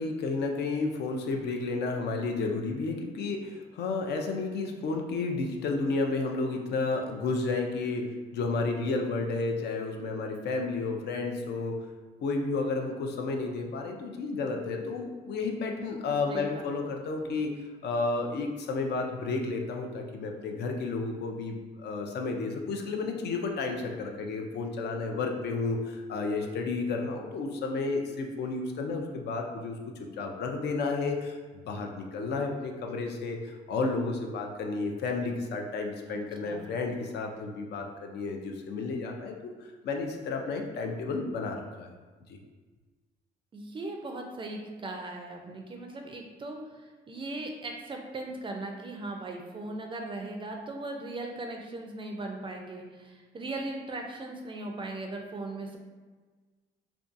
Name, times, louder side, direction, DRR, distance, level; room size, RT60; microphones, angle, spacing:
voice 1, 0.0-8.0 8.3-11.8 12.2-17.5 17.8-31.4 31.7-41.9 42.3-42.4, left 3 dB, 60° left, 2 dB, 0.4 m, -32 dB
voice 2, 16.3-16.7 36.1-36.2 36.4-36.7 43.5-55.8, right 2 dB, 25° right, 2 dB, 0.4 m, -38 dB
2.6 x 2.2 x 2.5 m, 1.3 s
cardioid pair, 95°, 19 cm